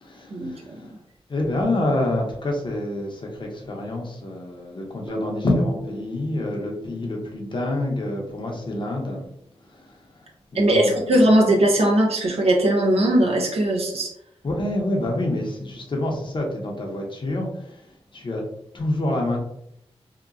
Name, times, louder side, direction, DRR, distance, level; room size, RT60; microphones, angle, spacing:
voice 1, 0.0-0.9 1.3-9.2 9.7-10.0 10.5-11.3 14.4-17.9 18.1-18.4 18.7-19.4, left 1 dB, 50° left, 0 dB, 0.8 m, -27 dB
Bass guitar, 5.1-9.3, left 2 dB, 10° right, 0.7 m, -38 dB
voice 2, 10.5-14.1, right 1 dB, 70° right, 0 dB, 0.7 m, -19 dB
2.8 x 2.2 x 2.5 m, 0.75 s
cardioid pair, 50°, 11 cm